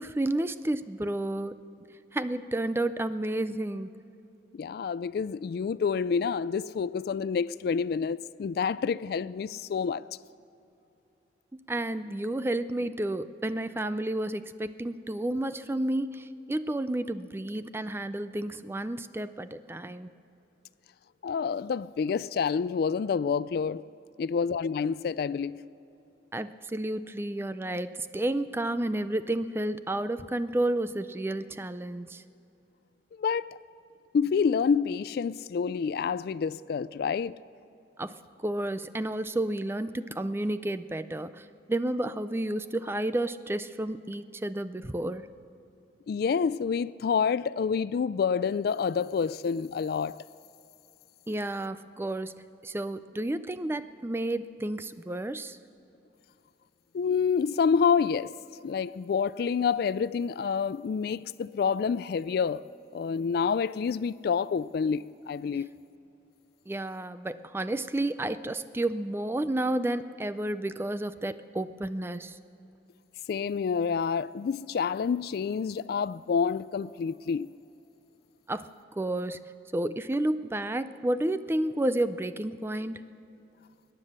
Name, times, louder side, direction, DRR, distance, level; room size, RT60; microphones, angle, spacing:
voice 1, 0.0-1.6 2.1-3.9 11.5-20.1 26.3-32.2 38.0-45.3 51.3-55.6 66.7-72.4 78.5-78.7 79.0-79.4 79.7-83.0, right 1 dB, 15° right, 0.4 m, -31 dB
voice 2, 4.5-10.0 21.2-23.8 24.2-25.6 33.2-33.5 34.1-37.3 46.1-50.2 56.9-58.3 58.6-62.6 62.9-65.7 73.3-77.5, left 6 dB, 60° left, 0.3 m, -28 dB
22.0 x 9.8 x 6.5 m
head